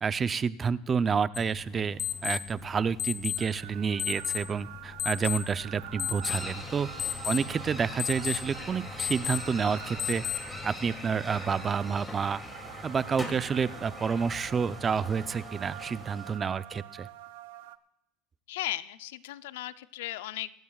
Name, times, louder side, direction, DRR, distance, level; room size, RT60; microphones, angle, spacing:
voice 1, 0.0-6.9 7.2-10.2 10.6-12.4 12.8-17.1, right 6 dB, 25° right, 15 dB, 0.5 m, -29 dB
sound 1, 1.3-10.7, left 11 dB, 35° left, 0.6 m, -36 dB
sound 2, 3.4-17.8, right 15 dB, 80° right, 0.6 m, -47 dB
sound 3, 6.2-16.4, left 1 dB, 15° left, 2.6 m, -42 dB
voice 2, 18.5-20.5, left 15 dB, 85° left, 14 dB, 0.5 m, -36 dB
24.5 x 12.0 x 2.4 m, 0.83 s
supercardioid pair, 115°, 0 cm